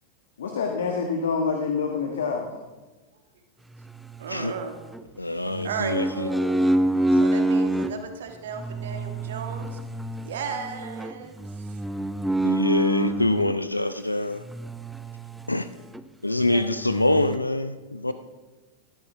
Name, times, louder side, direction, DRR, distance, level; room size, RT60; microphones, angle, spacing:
voice 1, 0.4-2.6, left 5 dB, 65° left, 3 dB, 1.4 m, -26 dB
sound 1, 3.8-5.0 5.5-7.9 8.5-13.6 14.4-15.6 15.9-16.0 16.4-17.4, right 1 dB, 5° right, 0.6 m, -27 dB
voice 2, 4.2-4.8 5.6-6.6 7.1-9.8 10.1-11.8 15.0-15.1 16.4-16.6, right 6 dB, 60° right, 5 dB, 1.6 m, -35 dB
voice 3, 5.2-6.3 12.4-14.4 15.5-15.7 16.2-18.1, left 2 dB, 85° left, 12 dB, 0.5 m, -25 dB
18.0 x 13.5 x 3.5 m, 1.2 s
figure-of-eight pair, 90°, 0 cm